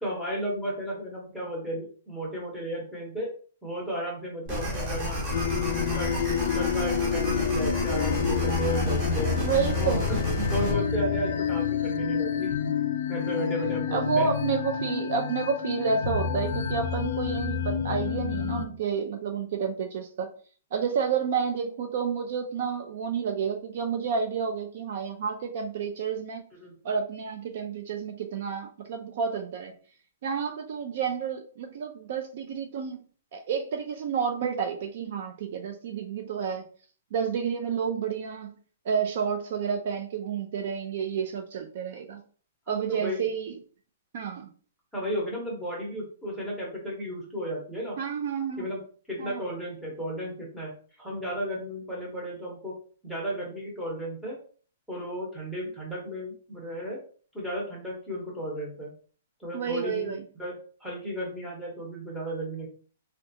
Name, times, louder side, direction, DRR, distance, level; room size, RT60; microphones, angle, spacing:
voice 1, 0.0-3.3 3.6-5.2 5.9-6.2 6.5-9.4 9.8-10.2 10.5-12.7 13.1-14.3 26.6-26.8 42.7-43.2 44.9-48.0 48.6-48.8 49.1-52.8 53.0-54.4 54.9-57.0 57.3-58.9 59.4-62.7, equal, ahead, -5 dB, 0.8 m, -34 dB
sound 1, 4.5-10.7, equal, 25° right, 0.9 m, -31 dB
sound 2, 5.3-18.7, left 6 dB, 60° left, 0.3 m, -28 dB
voice 2, 9.4-10.0 13.9-20.3 20.7-26.4 26.8-29.7 30.2-33.0 33.3-36.7 37.1-38.5 38.9-42.2 42.7-43.5 44.1-44.5 48.0-48.6 49.2-49.4 59.5-60.2, right 6 dB, 45° right, 5 dB, 0.3 m, -30 dB
3.6 x 2.2 x 2.7 m, 0.43 s
hypercardioid pair, 170°, 0 cm